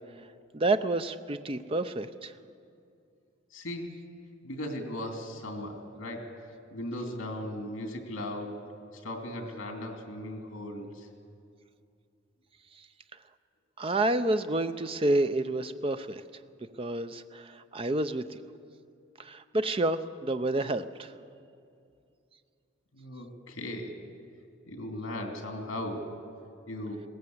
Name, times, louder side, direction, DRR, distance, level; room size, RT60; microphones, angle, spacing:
voice 1, 0.5-2.3 13.8-16.2 16.8-18.4 19.2-21.1, right 2 dB, 25° right, 10 dB, 0.6 m, -29 dB
voice 2, 3.5-4.0 4.4-8.6 8.9-11.1 22.9-23.9 24.7-26.2 26.7-27.0, left 1 dB, 75° left, 3 dB, 2.8 m, -37 dB
20.5 x 17.0 x 7.9 m, 2.5 s
head